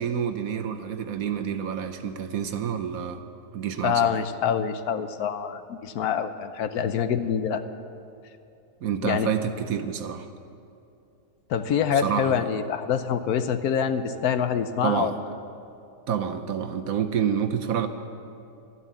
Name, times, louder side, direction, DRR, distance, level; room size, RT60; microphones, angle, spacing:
voice 1, 0.0-3.2 3.5-4.1 8.8-10.3 12.0-12.5 14.8-15.1 16.1-17.9, right 8 dB, 65° right, 7 dB, 1.1 m, -28 dB
voice 2, 3.8-7.6 9.0-9.3 11.5-15.1, left 7 dB, 70° left, 10 dB, 1.1 m, -25 dB
12.5 x 11.0 x 8.2 m, 2.6 s
omnidirectional pair, 1.7 m